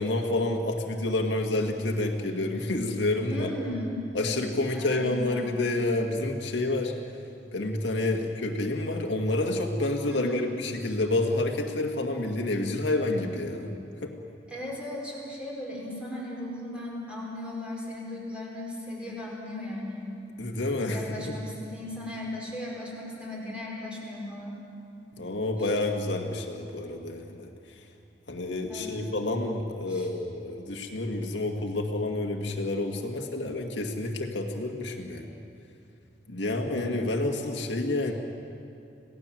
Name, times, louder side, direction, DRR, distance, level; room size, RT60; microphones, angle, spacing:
voice 1, 0.0-3.5 4.1-6.9 7.5-14.1 20.4-21.4 25.2-27.9 28.3-35.3 36.3-38.1, left 2 dB, 80° left, 2 dB, 2.0 m, -29 dB
voice 2, 3.3-4.0 4.3-5.6 10.1-10.4 14.5-20.1 20.9-24.5 28.7-29.1 29.9-30.1 36.6-36.9, left 1 dB, 5° right, -4 dB, 5.3 m, -37 dB
27.0 x 17.5 x 7.7 m, 2.6 s
head